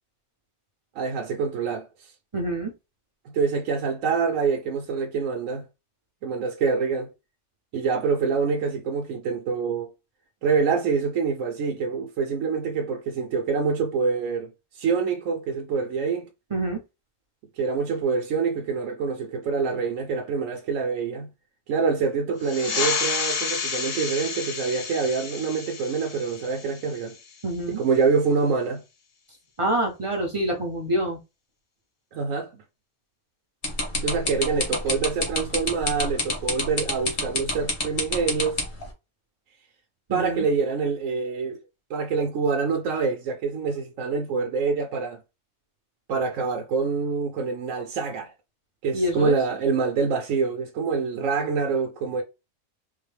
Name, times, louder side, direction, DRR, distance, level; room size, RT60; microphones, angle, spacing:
voice 1, 1.0-2.1 3.3-5.6 6.2-7.1 7.7-9.9 10.4-16.3 17.6-21.3 21.7-27.2 27.7-28.8 32.1-32.6 34.0-38.6 40.1-41.6 41.9-45.2 46.1-48.3 48.8-52.2, right 5 dB, 75° right, 1.0 m, -26 dB
voice 2, 2.3-2.7 16.5-16.8 27.4-27.8 29.6-31.2 40.1-40.4 48.9-49.3, right 1 dB, 40° right, 0.5 m, -26 dB
sound 1, 22.4-27.5, left 5 dB, 75° left, 0.3 m, -30 dB
computer mouse clicking, 33.6-38.8, left 2 dB, 40° left, 1.2 m, -26 dB
3.8 x 2.1 x 3.2 m
omnidirectional pair, 1.4 m